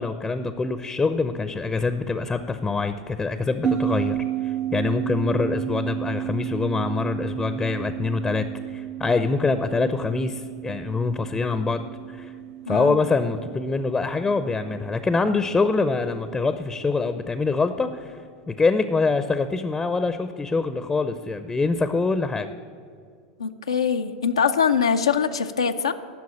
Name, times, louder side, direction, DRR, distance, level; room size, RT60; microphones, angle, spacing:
voice 1, 0.0-4.2 4.4-8.4 8.7-11.8 12.1-12.3 12.7-18.1 18.5-22.5, left 4 dB, 15° left, 11 dB, 0.6 m, -24 dB
sound 1, 3.6-16.4, right 11 dB, 25° right, 0.6 m, -32 dB
voice 2, 12.7-13.0 23.4-25.9, left 6 dB, 85° left, 7 dB, 0.5 m, -23 dB
11.5 x 6.1 x 8.5 m, 2.3 s
hypercardioid pair, 90°, 3 cm